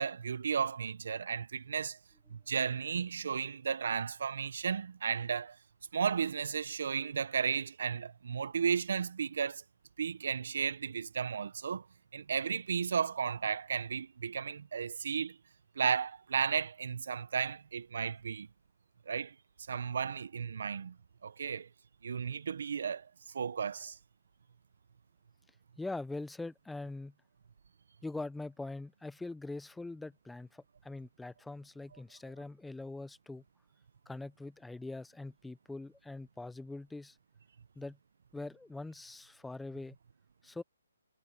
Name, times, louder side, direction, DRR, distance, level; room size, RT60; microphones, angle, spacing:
voice 1, 0.0-2.0 2.3-5.6 5.9-9.6 10.0-11.9 12.1-15.4 15.8-18.5 19.1-19.3 19.7-21.0 21.2-21.7 22.0-23.1 23.3-24.0, right 6 dB, 60° right, 0.7 m, -34 dB
voice 2, 25.8-27.1 28.0-33.4 34.1-37.2 37.8-38.0 38.3-40.0 40.4-40.6, left 2 dB, 5° left, 0.6 m, -43 dB
hypercardioid pair, 170°, 0 cm